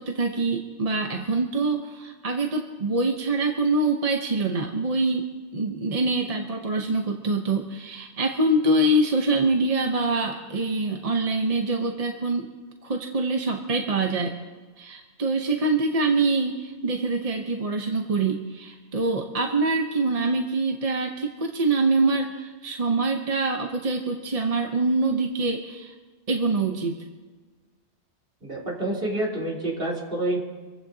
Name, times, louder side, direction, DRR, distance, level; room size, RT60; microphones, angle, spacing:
voice 1, 0.0-5.3 5.5-12.5 12.8-14.4 14.8-25.9 26.3-27.0, right 2 dB, 35° right, 3 dB, 0.9 m, -25 dB
voice 2, 28.4-30.4, right 1 dB, 55° right, -4 dB, 4.0 m, -28 dB
26.5 x 15.0 x 2.8 m, 1.3 s
omnidirectional pair, 1.2 m